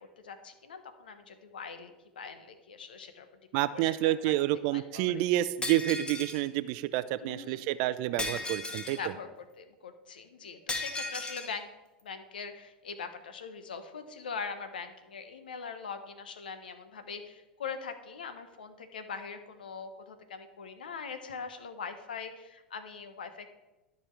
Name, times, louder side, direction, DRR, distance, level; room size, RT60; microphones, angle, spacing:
voice 1, 0.0-3.3 3.7-4.3 4.7-5.2 7.2-7.7 9.0-9.3 9.6-11.7 12.0-23.5, left 5 dB, 80° left, 9 dB, 1.1 m, -42 dB
voice 2, 3.5-9.0, right 15 dB, 55° right, 15 dB, 0.5 m, -29 dB
Shatter, 5.6-6.4 8.2-9.0 10.7-11.5, left 2 dB, 20° left, 1.7 m, -36 dB
12.5 x 5.4 x 4.6 m, 1.1 s
hypercardioid pair, 85°, 5 cm